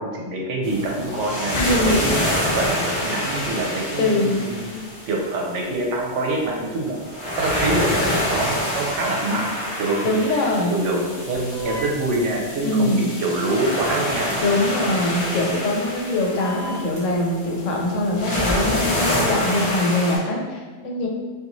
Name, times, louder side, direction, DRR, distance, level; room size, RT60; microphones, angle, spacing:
voice 1, 0.0-2.2 2.5-7.0 7.4-9.5 9.8-14.3, right 2 dB, 75° right, -1 dB, 0.9 m, -25 dB
sound 1, 0.6-20.2, left 1 dB, 45° left, 0.4 m, -27 dB
voice 2, 1.5-2.1 4.0-4.4 10.0-10.7 12.6-13.1 14.4-21.1, left 1 dB, 80° left, 0 dB, 0.9 m, -22 dB
sound 2, 11.5-12.2 14.3-14.4 16.4-17.0, equal, 35° right, 0.8 m, -32 dB
2.5 x 2.4 x 2.9 m, 1.5 s
omnidirectional pair, 1.3 m